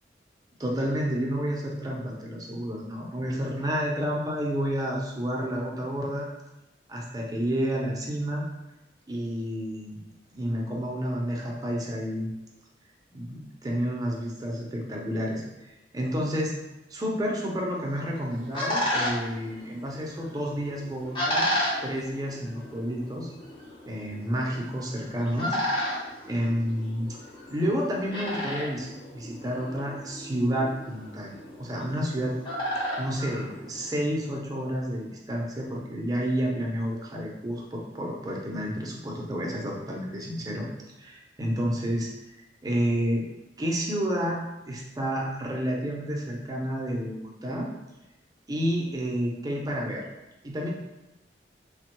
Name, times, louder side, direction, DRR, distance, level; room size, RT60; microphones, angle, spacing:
voice 1, 0.6-6.3 6.9-8.5 9.1-10.0 10.3-12.3 13.1-15.4 15.9-16.5 16.9-21.5 21.8-23.3 23.9-25.6 26.3-27.2 27.5-32.4 33.0-40.7 41.0-42.1 42.6-43.3 43.6-47.7 48.5-50.0 50.4-50.7, equal, 20° right, -2 dB, 0.5 m, -30 dB
sound 1, 17.9-34.1, equal, 30° left, 0.6 m, -33 dB
3.5 x 2.1 x 3.0 m, 0.98 s
head